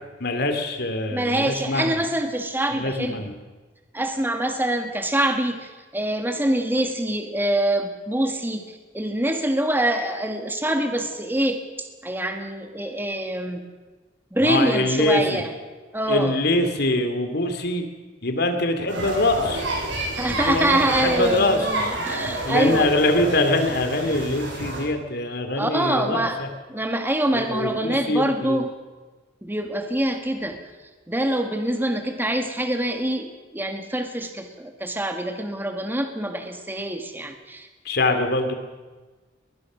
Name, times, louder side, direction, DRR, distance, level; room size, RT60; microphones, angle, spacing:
voice 1, 0.0-1.9 2.7-3.3 14.4-15.4 16.1-17.8 18.2-19.7 20.3-21.7 22.5-26.5 27.3-28.7 37.8-38.5, left 2 dB, 60° left, 6 dB, 2.6 m, -23 dB
voice 2, 1.1-3.2 3.9-8.6 8.9-13.6 14.3-15.5 15.9-16.4 20.2-22.9 25.5-28.7 29.4-30.6 31.1-37.7, right 1 dB, 10° right, 5 dB, 1.7 m, -25 dB
sound 1, 18.9-24.8, right 1 dB, 85° right, 7.5 m, -29 dB
20.5 x 20.0 x 6.3 m, 1.3 s
head